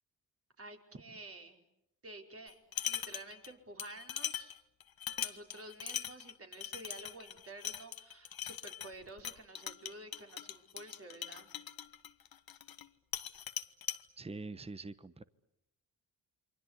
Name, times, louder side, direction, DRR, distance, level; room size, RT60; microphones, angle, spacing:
voice 1, 0.6-1.6 2.0-2.6 2.8-4.5 5.2-11.5, right 2 dB, 35° right, 3 dB, 4.9 m, -50 dB
sound 1, 2.5-3.5 3.8-12.9 13.1-14.0, left 9 dB, 55° left, 1.4 m, -41 dB
voice 2, 14.2-15.2, right 3 dB, 15° right, 15 dB, 1.1 m, -44 dB
28.5 x 24.0 x 8.2 m, 0.79 s
supercardioid pair, 55°, 42 cm